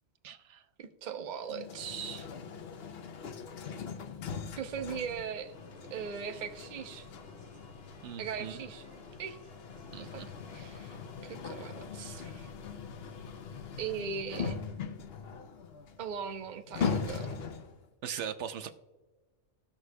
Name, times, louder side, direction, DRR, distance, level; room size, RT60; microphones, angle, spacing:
voice 1, 0.2-0.6 8.0-8.6 9.9-10.3 18.0-18.7, right 8 dB, 75° right, 10 dB, 0.9 m, -40 dB
voice 2, 0.8-2.3 4.6-5.5 5.9-7.1 8.2-8.8 9.2-9.4 10.0-10.2 10.5-10.9 11.2-12.5 13.8-14.6 16.0-17.4, right 7 dB, 45° right, 6 dB, 0.7 m, -39 dB
sound 1, 1.4-17.9, left 6 dB, 60° left, 0.9 m, -40 dB
sound 2, 4.3-11.9, left 1 dB, 5° left, 2.3 m, -58 dB
19.0 x 6.3 x 2.2 m, 1.2 s
omnidirectional pair, 1.2 m